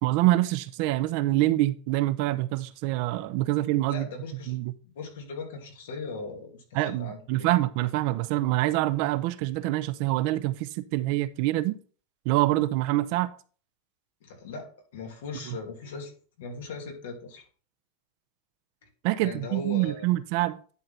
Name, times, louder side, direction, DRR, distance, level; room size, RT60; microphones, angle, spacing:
voice 1, 0.0-4.1 4.5-4.7 6.7-11.8 12.2-13.3 15.5-15.6 19.0-20.6, right 16 dB, 55° right, 0.6 m, -25 dB
voice 2, 3.9-4.6 4.9-7.5 14.2-17.5 18.8-18.9 19.2-20.1, left 4 dB, 85° left, 2.5 m, -39 dB
10.5 x 3.9 x 4.2 m
supercardioid pair, 145°, 0 cm